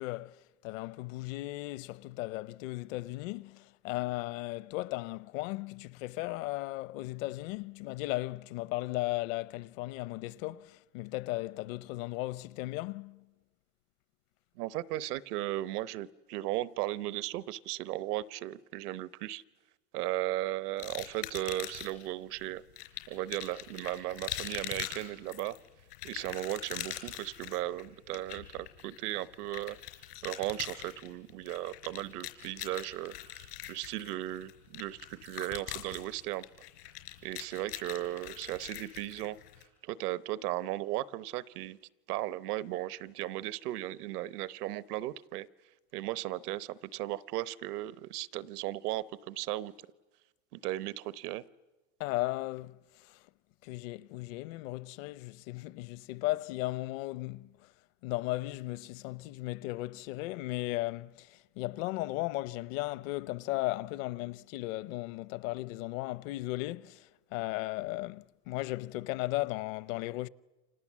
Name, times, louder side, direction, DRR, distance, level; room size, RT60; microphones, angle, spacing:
voice 1, 0.0-13.3 52.0-53.3 53.6-57.7 58.0-70.3, left 19 dB, 60° left, 0.8 m, -36 dB
voice 2, 14.6-19.4 19.9-22.6 23.1-25.6 26.0-29.8 30.2-36.5 37.2-39.4 39.8-41.8 42.1-45.5 45.9-49.7 50.5-51.4, right 15 dB, 80° right, 1.0 m, -36 dB
sound 1, 20.8-22.1 22.8-39.6, left 14 dB, 85° left, 4.4 m, -43 dB
30.0 x 26.5 x 7.4 m
supercardioid pair, 145°, 46 cm